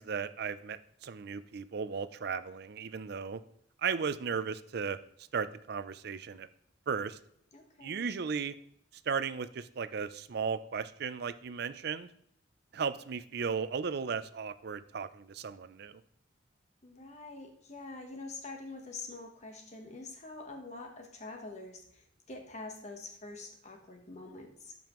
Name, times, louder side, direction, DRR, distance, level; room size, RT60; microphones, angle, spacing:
voice 1, 0.0-3.4 3.8-5.0 5.3-6.5 6.9-7.2 7.8-8.5 9.1-12.1 12.7-16.0, right 6 dB, 55° right, 13 dB, 0.5 m, -35 dB
voice 2, 7.5-8.1 16.8-24.8, left 3 dB, 35° left, 3 dB, 1.0 m, -45 dB
12.5 x 5.4 x 3.0 m, 0.70 s
head